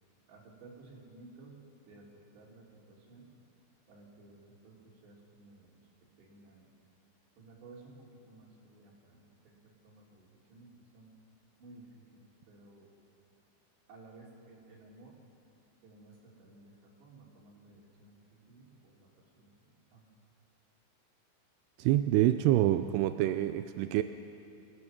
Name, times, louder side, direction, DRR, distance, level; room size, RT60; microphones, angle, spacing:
voice 1, 0.3-2.1 2.3-3.3 3.9-5.9 6.2-6.7 7.4-10.7 10.9-11.1 11.6-12.9 13.9-15.2 15.8-20.1, right 2 dB, 70° right, -3 dB, 5.3 m, -56 dB
voice 2, 21.8-24.0, right 13 dB, 85° right, 10 dB, 2.3 m, -26 dB
28.0 x 16.0 x 6.1 m, 2.6 s
omnidirectional pair, 5.4 m